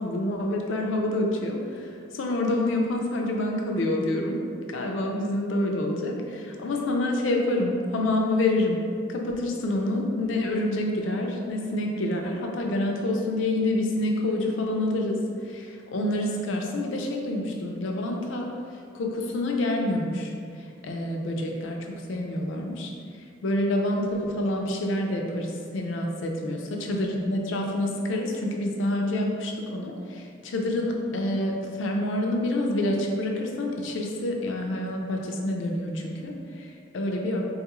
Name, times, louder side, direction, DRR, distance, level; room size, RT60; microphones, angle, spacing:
voice 1, 0.0-4.4 4.7-8.8 9.1-18.5 18.9-22.9 23.4-37.4, left 1 dB, 80° left, 1 dB, 0.4 m, -27 dB
3.5 x 2.3 x 3.0 m, 2.3 s
head